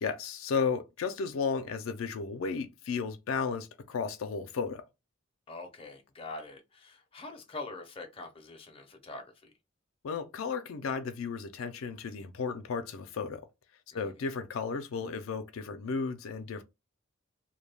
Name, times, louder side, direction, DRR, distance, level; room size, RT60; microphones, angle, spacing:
voice 1, 0.0-4.8 10.0-13.4 13.9-16.6, left 5 dB, 80° left, 0.4 m, -34 dB
voice 2, 5.5-9.5 13.9-14.2, left 3 dB, 25° left, 0.5 m, -44 dB
2.2 x 2.2 x 3.2 m
head